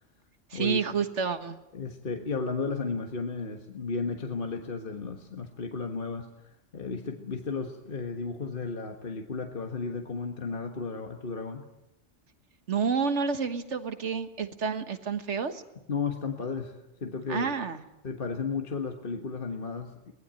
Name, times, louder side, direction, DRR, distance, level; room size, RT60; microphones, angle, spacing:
voice 1, 0.5-1.6 12.7-15.6 17.3-17.8, right 6 dB, 70° right, 9 dB, 1.8 m, -29 dB
voice 2, 1.7-11.7 15.9-17.5 18.0-20.1, left 4 dB, 45° left, 4 dB, 1.7 m, -34 dB
23.5 x 19.0 x 9.1 m, 0.91 s
omnidirectional pair, 1.2 m